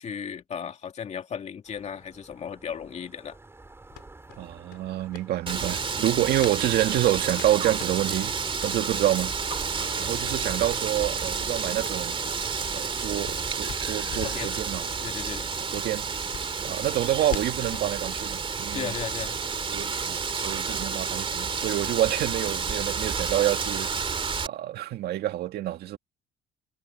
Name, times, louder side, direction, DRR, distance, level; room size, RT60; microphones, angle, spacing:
voice 1, 0.0-3.4 6.1-6.3 14.2-14.6 15.0-15.5 18.7-19.4, left 7 dB, 40° left, 2.6 m, -35 dB
sound 1, 1.6-18.8, right 2 dB, 15° right, 5.6 m, -50 dB
sound 2, 3.9-6.6 6.9-8.3 8.7-8.8 9.1-9.6 10.0-10.2 10.5-10.6 10.9-11.1 11.4-13.4 13.7-14.4 14.7-14.9 15.2-15.3 15.7-17.9, left 12 dB, 70° left, 3.4 m, -42 dB
voice 2, 4.4-8.3 8.6-9.3 9.8-12.2 12.7-14.9 15.7-16.1 16.6-18.9 19.7-23.9 24.4-26.0, right 13 dB, 70° right, 2.0 m, -28 dB
Wind, 5.5-24.5, right 5 dB, 30° right, 2.6 m, -30 dB
cardioid pair, 110°, 17 cm